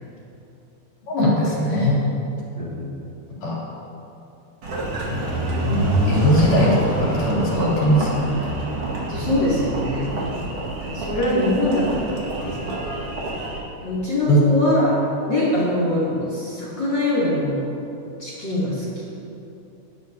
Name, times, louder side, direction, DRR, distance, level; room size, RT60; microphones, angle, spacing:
voice 1, 1.1-2.0 3.4-3.6 5.6-5.8 6.1-8.3 14.3-14.4, equal, 75° left, -7 dB, 4.6 m, -19 dB
voice 2, 2.6-2.9 9.1-10.2 10.8-12.7 13.8-15.0 15.3-17.6 18.2-19.1, left 1 dB, 35° left, -9 dB, 3.1 m, -23 dB
Engine, 4.6-13.6, right 1 dB, 50° right, 2.5 m, -26 dB
20.0 x 11.5 x 2.7 m, 2.8 s
omnidirectional pair, 3.8 m